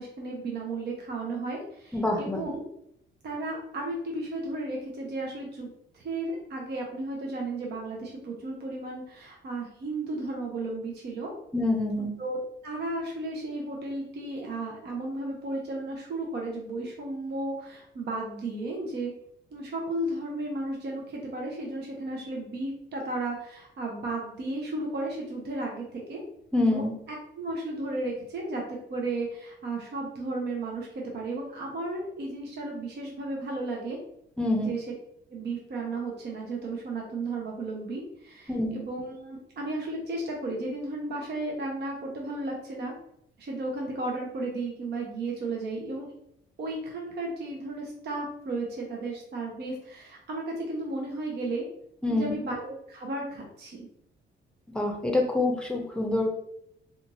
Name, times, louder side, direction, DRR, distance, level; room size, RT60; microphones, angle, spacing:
voice 1, 0.0-2.6 3.2-11.3 12.2-12.4 12.6-19.1 19.5-26.2 26.7-34.0 34.6-34.8 35.3-42.9 43.4-46.1 46.6-51.6 52.1-53.9, right 2 dB, 55° right, -1 dB, 0.7 m, -34 dB
voice 2, 1.9-2.4 11.5-12.1 26.5-26.9 34.4-34.7 38.5-38.7 52.0-52.3 54.7-56.3, left 2 dB, 5° left, 1 dB, 0.7 m, -26 dB
2.5 x 2.4 x 2.9 m, 0.75 s
cardioid pair, 90°, 20 cm